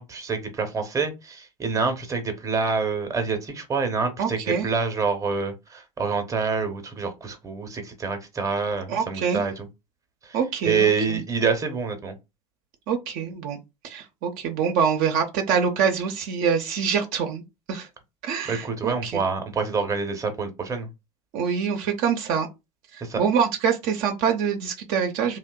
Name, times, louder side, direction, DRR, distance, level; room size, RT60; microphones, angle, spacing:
voice 1, 0.0-9.7 10.2-10.4 10.6-12.1 18.5-20.9 23.0-23.2, right 4 dB, 20° right, 0.7 m, -27 dB
voice 2, 4.2-4.7 8.9-9.4 10.3-11.2 12.9-13.6 13.8-17.4 17.7-17.9 18.2-19.2 21.3-22.5 22.9-25.4, right 7 dB, 55° right, 0.5 m, -25 dB
2.6 x 2.0 x 2.2 m
hypercardioid pair, 75°, 18 cm